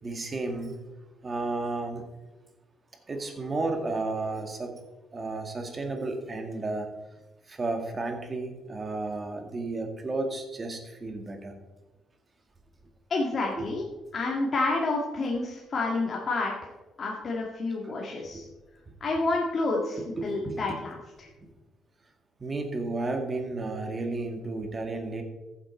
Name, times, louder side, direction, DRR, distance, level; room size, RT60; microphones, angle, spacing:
voice 1, 0.0-0.8 1.2-2.0 3.1-4.7 5.1-6.9 7.5-11.5 13.6-13.7 18.3-18.4 20.2-20.6 22.4-25.2, right 3 dB, 30° right, 4 dB, 2.0 m, -32 dB
voice 2, 13.1-13.8 14.1-16.7 17.0-18.4 19.0-21.3, left 2 dB, 45° left, -2 dB, 1.8 m, -29 dB
14.5 x 7.6 x 4.3 m, 1.2 s
cardioid pair, 90°, 0 cm